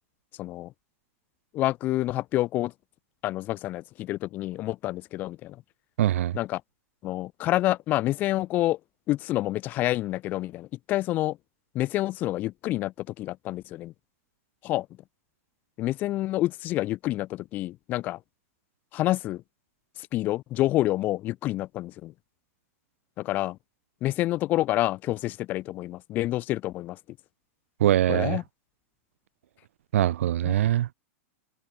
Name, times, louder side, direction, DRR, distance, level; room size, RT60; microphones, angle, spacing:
voice 1, 0.4-0.7 1.5-2.7 3.2-5.6 6.3-6.6 7.0-8.8 9.1-11.4 11.7-13.9 14.6-14.9 15.8-18.2 18.9-19.4 20.0-22.1 23.2-23.6 24.0-27.0 28.1-28.4 30.4-30.5, left 16 dB, 25° left, 1.5 m, -28 dB
voice 2, 6.0-6.4 27.8-28.4 29.9-30.9, right 12 dB, 70° right, 1.0 m, -23 dB
supercardioid pair, 175°, 7 cm